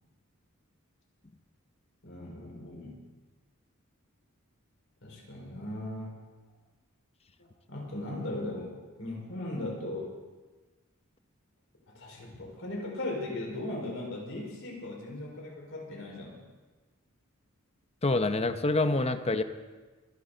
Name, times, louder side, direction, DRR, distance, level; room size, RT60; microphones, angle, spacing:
voice 1, 2.0-3.0 5.0-6.1 7.7-8.7 9.0-10.1 11.9-16.4, left 1 dB, 65° left, -1 dB, 4.7 m, -38 dB
voice 2, 18.0-19.4, left 2 dB, 30° left, 9 dB, 0.8 m, -26 dB
25.0 x 11.5 x 4.0 m, 1.3 s
head